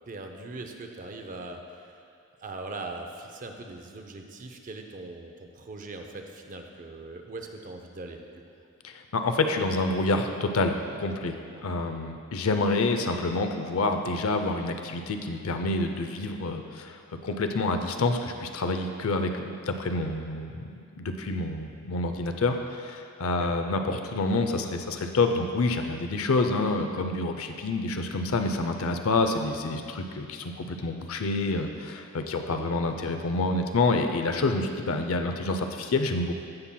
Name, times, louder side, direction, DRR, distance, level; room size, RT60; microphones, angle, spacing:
voice 1, 0.1-1.9 2.4-8.2 11.5-11.7 23.2-23.5 32.5-32.8, right 2 dB, 40° right, 4 dB, 0.6 m, -41 dB
voice 2, 8.8-17.0 17.2-36.3, left 3 dB, 80° left, 6 dB, 0.5 m, -28 dB
15.5 x 5.7 x 2.2 m, 2.4 s
head